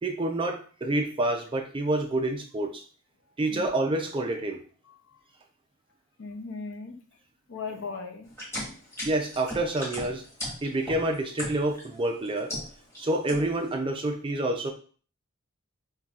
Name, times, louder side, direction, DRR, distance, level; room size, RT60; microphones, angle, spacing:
voice 1, 0.0-2.8 3.4-4.6 9.0-10.2 10.6-12.5 13.0-14.7, right 1 dB, 25° right, 4 dB, 0.4 m, -28 dB
voice 2, 4.8-5.2 6.2-7.0 7.5-8.3, left 4 dB, 55° left, 5 dB, 0.6 m, -38 dB
sound 1, 8.3-11.9 12.3-13.0 13.3-13.7, left 1 dB, 10° left, 1.2 m, -36 dB
5.4 x 2.3 x 2.4 m, 0.42 s
head